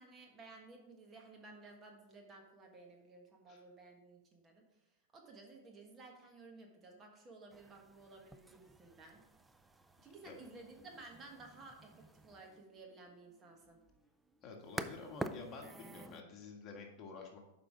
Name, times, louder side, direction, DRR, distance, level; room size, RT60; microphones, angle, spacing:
voice 1, 0.0-4.6 5.1-9.2 10.0-13.8, right 3 dB, 25° right, 2 dB, 1.4 m, -55 dB
sound 1, 7.5-16.2, right 2 dB, 10° right, 0.4 m, -49 dB
voice 2, 14.4-17.4, left 4 dB, 35° left, 1 dB, 1.6 m, -50 dB
6.9 x 5.4 x 4.9 m, 0.92 s
hypercardioid pair, 125°, 0 cm